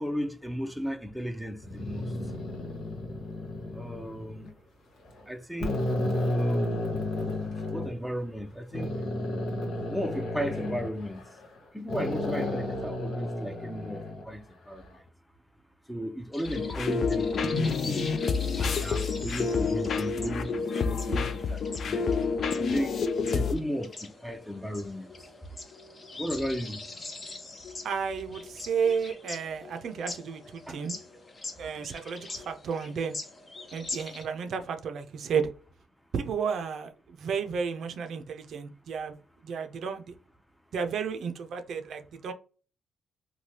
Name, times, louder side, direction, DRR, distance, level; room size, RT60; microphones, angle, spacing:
voice 1, 0.0-2.1 3.7-4.5 5.3-5.8 6.1-6.9 7.7-8.9 9.9-11.2 11.7-14.8 15.9-18.1 18.6-22.1 22.6-23.0 23.3-25.1 26.2-26.8 30.7-30.8, equal, ahead, 0.5 m, -35 dB
sound 1, 1.6-4.5 5.1-5.2 5.6-7.9 8.7-11.6 11.9-14.2, left 1 dB, 80° left, 0.9 m, -32 dB
sound 2, 16.3-34.3, left 3 dB, 35° left, 0.7 m, -43 dB
sound 3, 16.5-23.5, left 5 dB, 60° left, 0.3 m, -28 dB
voice 2, 27.8-31.0 31.6-33.2 33.7-35.5 36.1-39.2 39.4-40.1 40.7-42.3, right 6 dB, 70° right, 0.4 m, -32 dB
3.2 x 2.2 x 2.7 m
cardioid pair, 85°, 0 cm